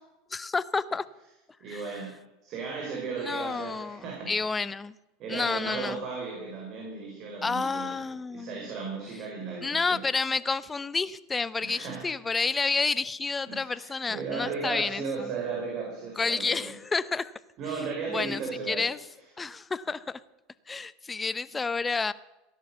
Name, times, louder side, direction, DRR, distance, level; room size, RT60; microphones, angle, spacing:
voice 1, 0.3-1.0 1.7-1.8 3.2-4.9 5.3-6.0 7.4-8.7 9.6-15.0 16.2-17.3 18.1-18.4 18.7-19.0 19.4-20.2 20.7-22.1, left 4 dB, 20° left, 17 dB, 0.7 m, -30 dB
voice 2, 1.6-4.3 5.2-7.9 8.3-10.0 11.6-12.1 13.5-16.7 17.6-18.9, right 4 dB, 50° right, 0 dB, 5.1 m, -35 dB
16.5 x 11.0 x 7.0 m, 1.0 s
hypercardioid pair, 100°, 0 cm